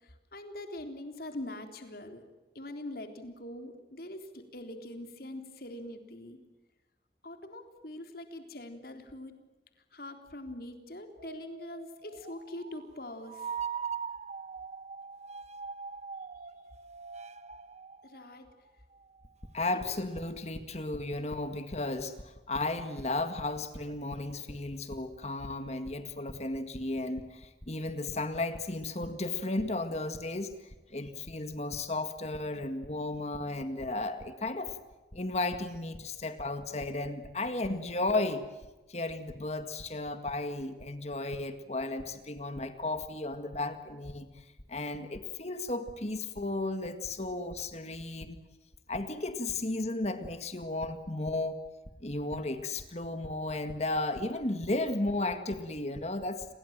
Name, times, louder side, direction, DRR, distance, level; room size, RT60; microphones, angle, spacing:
voice 1, 0.0-2.2 2.5-6.4 7.2-9.3 9.9-13.6 18.0-18.5 19.7-20.0, left 1 dB, 55° left, 6 dB, 3.8 m, -43 dB
sound 1, 11.2-19.3 20.3-20.4 22.9-23.1 23.4-24.6, right 6 dB, 40° right, 1.2 m, -42 dB
voice 2, 19.5-30.5 30.9-34.8 35.1-38.4 38.9-48.4 48.9-51.6 52.0-56.5, left 2 dB, 35° left, 9 dB, 1.9 m, -34 dB
29.5 x 22.5 x 7.5 m, 1.2 s
head